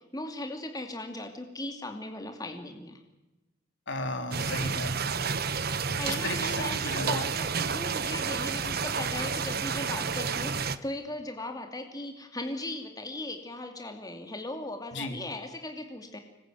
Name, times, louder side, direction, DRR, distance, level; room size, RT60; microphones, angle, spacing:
voice 1, 0.1-3.0 6.0-16.2, left 2 dB, 20° left, 5 dB, 2.5 m, -38 dB
voice 2, 3.9-5.1 6.1-7.2 14.9-15.2, left 1 dB, 65° left, 6 dB, 3.4 m, -34 dB
sound 1, 4.3-10.8, right 5 dB, 55° right, 1.2 m, -30 dB
25.0 x 21.0 x 9.3 m, 1.0 s
head